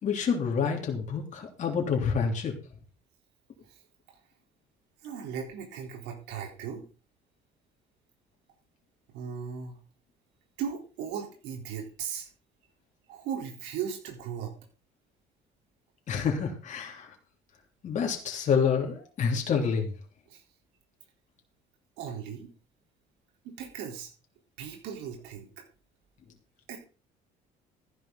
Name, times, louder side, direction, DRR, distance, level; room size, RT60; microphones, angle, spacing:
voice 1, 0.0-2.5 16.1-17.1 17.8-19.9, left 6 dB, 45° left, 1 dB, 3.2 m, -28 dB
voice 2, 5.0-6.9 9.1-9.8 10.6-12.3 13.1-14.5 20.3-20.4 22.0-22.5 23.4-24.1 24.6-25.7 26.7-26.8, right 7 dB, 90° right, 2 dB, 3.8 m, -37 dB
14.5 x 11.0 x 3.9 m, 0.35 s
cardioid pair, 120°, 17 cm